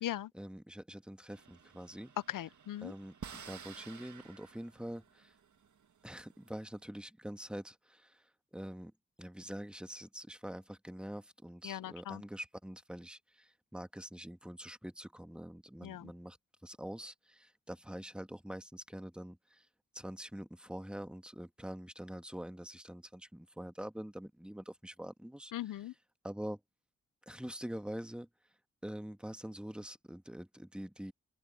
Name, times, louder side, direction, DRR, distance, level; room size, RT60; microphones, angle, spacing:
voice 1, 0.3-2.1 2.8-5.3 6.0-8.2 8.5-8.9 9.2-16.4 16.6-19.7 19.9-25.5 26.2-26.6 27.3-28.3 28.8-31.1, equal, 5° right, 1.7 m, -45 dB
sound 1, 1.3-6.8, right 7 dB, 65° right, 1.8 m, -53 dB
voice 2, 2.3-2.9 11.6-12.2 15.8-16.1 25.5-25.9, left 13 dB, 80° left, 0.6 m, -39 dB
open air
supercardioid pair, 40°, 32 cm